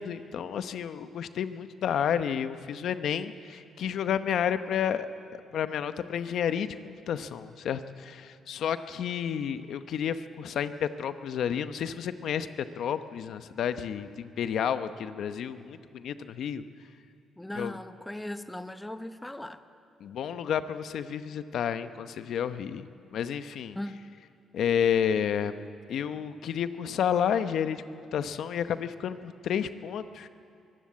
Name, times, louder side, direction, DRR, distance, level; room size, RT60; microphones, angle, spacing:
voice 1, 0.0-16.6 17.5-17.7 20.0-23.8 24.5-25.6 25.9-30.3, left 8 dB, 70° left, 11 dB, 0.9 m, -31 dB
voice 2, 17.4-19.6 23.7-24.1, left 1 dB, 10° left, 10 dB, 0.9 m, -38 dB
24.0 x 14.0 x 8.6 m, 2.4 s
cardioid pair, 90°, 0 cm